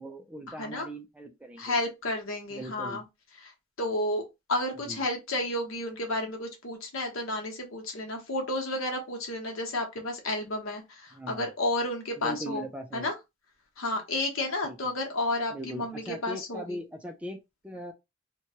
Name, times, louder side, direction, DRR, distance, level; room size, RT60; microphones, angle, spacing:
voice 1, 0.0-1.9 2.5-3.0 4.9-5.0 11.1-11.5 12.2-13.1 14.6-14.8 15.5-17.4 17.6-17.9, equal, 5° right, 0.4 m, -40 dB
voice 2, 1.6-3.0 3.8-4.2 4.5-12.7 12.9-13.1 13.8-16.8, left 1 dB, 70° left, 1.0 m, -31 dB
2.8 x 2.3 x 2.8 m
head